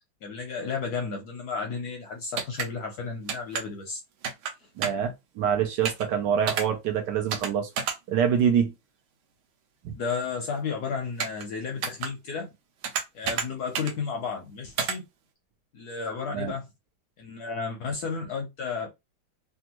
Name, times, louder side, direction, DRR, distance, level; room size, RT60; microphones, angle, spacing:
voice 1, 0.2-4.0 10.0-12.5 13.1-15.1 15.7-16.7 17.2-18.9, left 5 dB, 70° left, 0.9 m, -33 dB
sound 1, 2.4-2.7 3.3-3.6 4.2-4.5 4.8-5.1 5.9-6.1 6.5-6.7 7.3-7.5 7.8-8.0 11.2-11.4 11.8-12.1 12.8-13.5 13.8-13.9 14.8-15.0, right 7 dB, 85° right, 1.5 m, -29 dB
voice 2, 4.8-7.7 8.1-8.7 9.8-9.9 16.3-16.5, right 8 dB, 70° right, 1.1 m, -25 dB
3.4 x 2.3 x 2.9 m
omnidirectional pair, 2.2 m